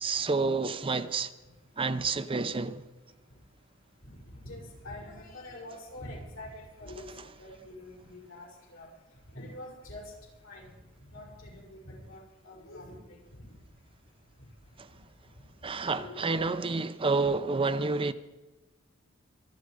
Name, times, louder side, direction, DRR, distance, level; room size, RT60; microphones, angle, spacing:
voice 1, 0.0-1.3 1.8-2.8 14.8-14.9 15.6-18.1, right 3 dB, 25° right, 0.6 m, -29 dB
voice 2, 4.4-7.1 7.4-8.5 8.7-8.9 9.3-10.1 10.4-10.7 11.1-12.9 13.4-13.5 15.9-16.4, left 1 dB, 80° left, 6.4 m, -45 dB
25.0 x 9.4 x 5.0 m
head